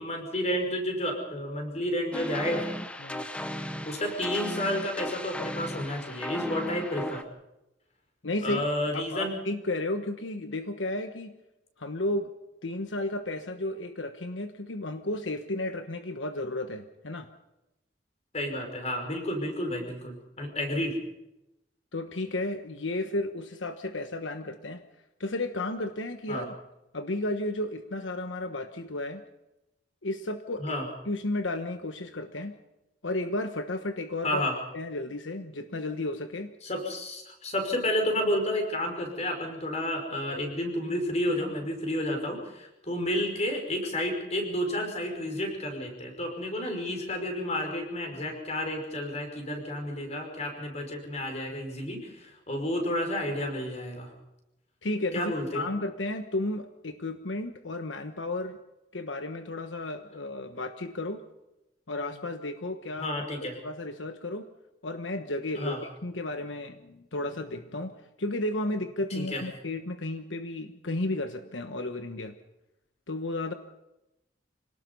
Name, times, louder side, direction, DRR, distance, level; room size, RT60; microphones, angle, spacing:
voice 1, 0.0-2.6 3.9-7.2 8.4-9.4 18.3-20.9 26.3-26.5 30.6-30.9 34.2-34.6 36.6-54.1 55.1-55.7 63.0-63.6 65.6-65.8 69.1-69.4, left 1 dB, 35° left, 3 dB, 5.5 m, -31 dB
sound 1, 2.1-7.2, equal, 5° left, 1.0 m, -36 dB
voice 2, 8.2-11.3 11.8-12.3 12.6-17.3 21.9-24.8 25.2-26.6 26.9-29.2 30.0-30.8 31.1-32.5 33.0-34.4 34.7-36.5 54.8-58.6 58.9-61.2 61.9-63.1 63.4-64.4 64.8-65.7 66.0-72.3 73.1-73.5, left 2 dB, 85° left, 8 dB, 1.2 m, -33 dB
26.5 x 18.5 x 5.5 m, 0.92 s
head